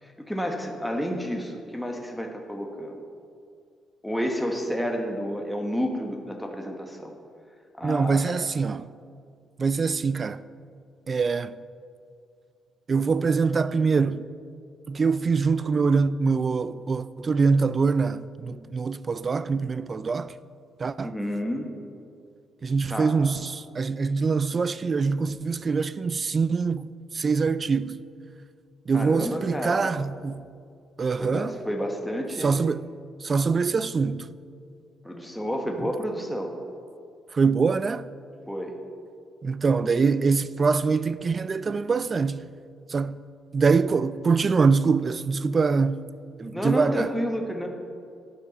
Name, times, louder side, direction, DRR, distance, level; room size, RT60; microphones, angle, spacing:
voice 1, 0.0-3.0 4.0-7.1 7.8-8.2 21.0-21.7 22.9-23.1 28.9-29.9 31.2-32.6 35.0-36.5 38.5-38.7 46.5-47.7, equal, 5° left, 1.2 m, -30 dB
voice 2, 7.8-8.9 9.6-10.4 11.1-11.6 12.9-14.3 14.9-20.3 20.8-21.2 22.6-28.0 28.9-30.5 31.0-31.6 32.4-32.8 33.2-34.3 35.8-35.9 37.3-38.1 39.4-42.4 42.9-43.2 43.5-46.1 46.4-47.1, right 4 dB, 35° right, 0.3 m, -24 dB
11.5 x 9.4 x 4.1 m
cardioid pair, 90°, 0 cm